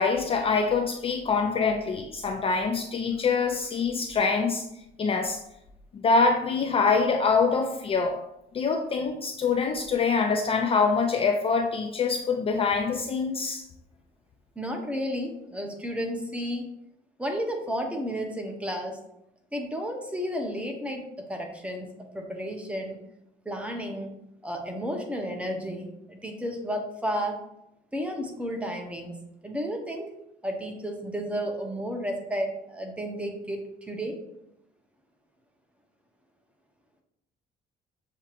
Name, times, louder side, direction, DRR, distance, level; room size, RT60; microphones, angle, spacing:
voice 1, 0.0-4.6 5.0-5.4 5.9-8.2 8.5-13.6, left 4 dB, 35° left, 4 dB, 0.4 m, -25 dB
voice 2, 14.6-16.7 17.2-19.0 19.5-21.9 22.1-23.0 23.4-24.1 24.4-27.4 27.9-30.1 30.4-34.2, equal, 5° right, 2 dB, 0.8 m, -32 dB
7.0 x 2.8 x 2.5 m, 0.81 s
cardioid pair, 110°, 17 cm